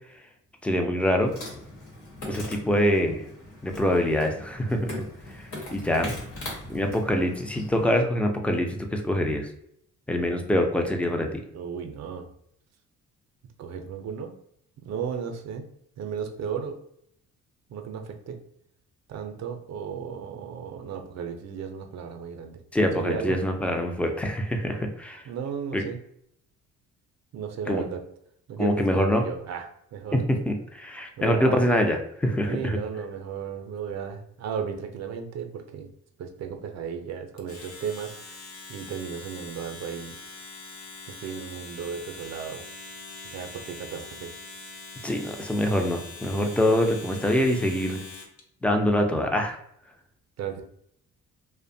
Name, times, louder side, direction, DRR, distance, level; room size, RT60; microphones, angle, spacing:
voice 1, 0.6-1.3 2.3-3.2 3.6-5.0 5.3-6.1 6.7-9.5 10.1-11.4 22.7-25.2 25.7-25.8 27.7-27.8 28.6-29.2 30.1-32.8 45.0-48.0 48.6-49.6, left 1 dB, 5° left, 4 dB, 0.3 m, -25 dB
Insect, 1.2-8.0, left 2 dB, 85° left, 1.1 m, -40 dB
voice 2, 11.5-12.3 13.6-14.3 14.8-15.6 16.0-16.8 17.7-18.4 19.1-23.4 25.3-26.0 27.3-28.0 28.5-30.2 31.2-31.6 32.5-35.9 36.2-38.4 38.7-40.2 41.1-42.6 43.3-44.4 50.4-50.6, right 7 dB, 60° right, 5 dB, 0.5 m, -34 dB
Domestic sounds home sounds, 37.4-48.4, left 3 dB, 50° left, 0.7 m, -43 dB
2.5 x 2.1 x 2.6 m, 0.71 s
cardioid pair, 90°, 30 cm